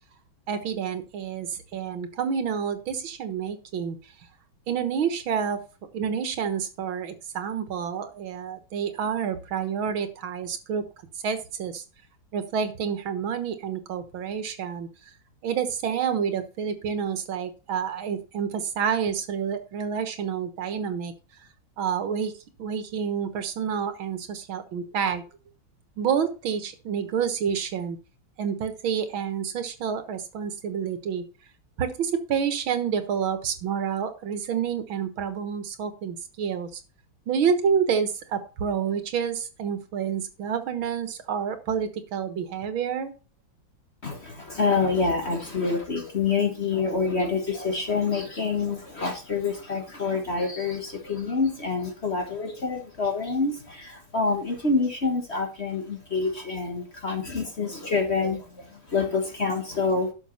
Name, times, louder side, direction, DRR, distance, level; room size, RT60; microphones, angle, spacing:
voice 1, 0.5-4.0 4.7-5.6 5.9-10.8 11.2-11.8 12.3-14.9 15.4-21.1 21.8-22.3 22.6-25.2 26.0-28.0 28.4-31.2 31.8-36.8 37.3-43.1, right 7 dB, 85° right, 10 dB, 2.1 m, -28 dB
voice 2, 44.0-60.1, left 4 dB, 35° left, 4 dB, 1.6 m, -27 dB
11.5 x 6.4 x 4.2 m, 0.33 s
omnidirectional pair, 2.1 m